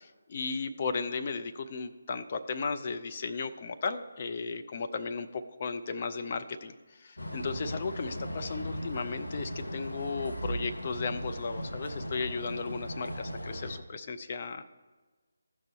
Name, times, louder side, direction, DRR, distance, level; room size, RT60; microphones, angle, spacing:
voice 1, 0.0-14.6, left 4 dB, 35° left, 7 dB, 0.5 m, -35 dB
sound 1, 7.2-13.8, equal, 75° left, 1.0 m, -38 dB
14.0 x 5.3 x 4.3 m, 1.3 s
figure-of-eight pair, 150°, 0 cm